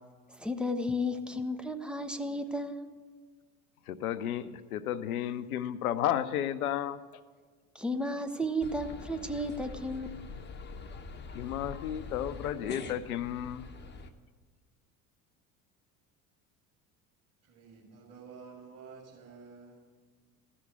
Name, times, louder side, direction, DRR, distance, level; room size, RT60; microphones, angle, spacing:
voice 1, 0.3-2.9 7.7-10.1, left 1 dB, ahead, 6 dB, 0.5 m, -33 dB
voice 2, 3.9-7.0 11.3-13.7, left 11 dB, 65° left, 14 dB, 0.7 m, -33 dB
sound 1, 8.6-14.1, left 4 dB, 25° left, 0.8 m, -44 dB
voice 3, 17.4-19.9, right 5 dB, 35° right, -5 dB, 3.1 m, -50 dB
15.0 x 6.3 x 8.1 m, 1.5 s
figure-of-eight pair, 65°, 46 cm